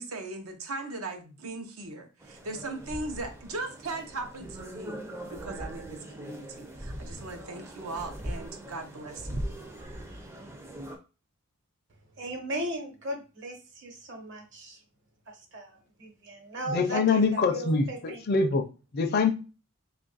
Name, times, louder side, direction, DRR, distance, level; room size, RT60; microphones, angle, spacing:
voice 1, 0.0-5.0 5.3-9.4, right 2 dB, 75° right, 5 dB, 0.7 m, -38 dB
sound 1, 2.2-11.0, right 1 dB, 10° right, 0.4 m, -40 dB
voice 2, 12.2-14.8 15.3-18.2, right 1 dB, 55° right, 3 dB, 1.1 m, -37 dB
voice 3, 16.7-18.7 18.9-19.3, left 4 dB, 45° left, 8 dB, 0.4 m, -24 dB
3.0 x 2.5 x 3.9 m, 0.32 s
head